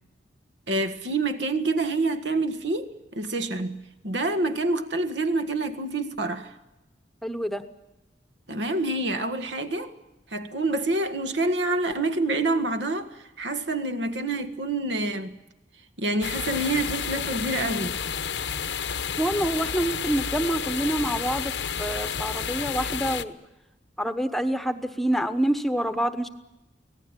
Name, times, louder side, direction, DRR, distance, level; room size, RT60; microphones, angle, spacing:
voice 1, 0.7-6.5 8.5-9.9 10.3-13.1 13.4-15.4 16.0-18.0, right 2 dB, 80° right, 1.8 m, -27 dB
voice 2, 7.2-7.6 19.2-21.5 21.8-23.3 24.0-26.3, right 1 dB, ahead, 1.0 m, -26 dB
sound 1, 16.2-23.2, left 7 dB, 80° left, 1.0 m, -30 dB
25.5 x 17.5 x 9.1 m
head